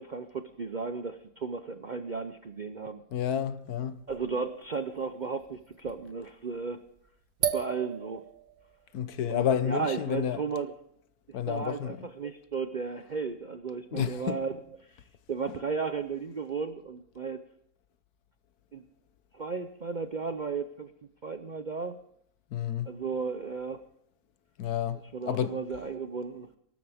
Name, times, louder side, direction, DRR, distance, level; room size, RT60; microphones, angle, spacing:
voice 1, 0.0-3.0 4.1-6.8 7.5-8.2 9.3-10.7 11.5-17.4 18.7-18.8 19.3-20.9 21.2-22.0 22.9-23.8 25.1-26.5, right 5 dB, 50° right, 0.5 m, -34 dB
voice 2, 3.1-4.0 8.9-10.4 11.3-12.0 13.9-14.4 22.5-22.9 24.6-25.6, left 9 dB, 70° left, 1.3 m, -30 dB
sound 1, 4.6-4.7 5.2-5.3 5.5-6.1 7.4-8.7, right 9 dB, 85° right, 1.7 m, -33 dB
23.0 x 12.5 x 3.5 m
omnidirectional pair, 1.7 m